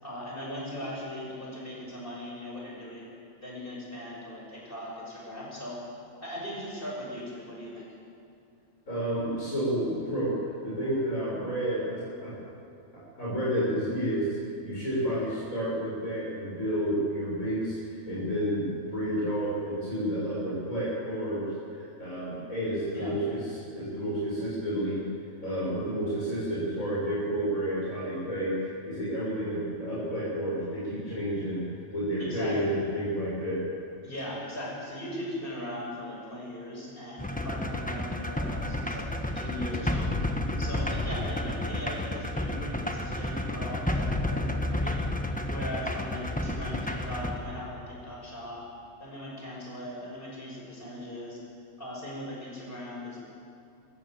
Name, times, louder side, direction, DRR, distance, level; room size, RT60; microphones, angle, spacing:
voice 1, 0.0-3.1 3.4-5.8 6.2-7.9 22.9-23.1 32.2-32.8 34.0-40.1 40.6-45.0 45.5-48.6 49.0-51.4 51.8-53.2, left 1 dB, 40° left, -3 dB, 6.4 m, -39 dB
voice 2, 8.9-12.3 12.9-14.3 14.6-25.0 25.4-31.6 31.9-33.6, equal, 80° left, -8 dB, 7.0 m, -30 dB
sound 1, 37.2-47.4, left 1 dB, 5° left, 1.3 m, -31 dB
27.0 x 15.5 x 7.7 m, 2.5 s
omnidirectional pair, 1.4 m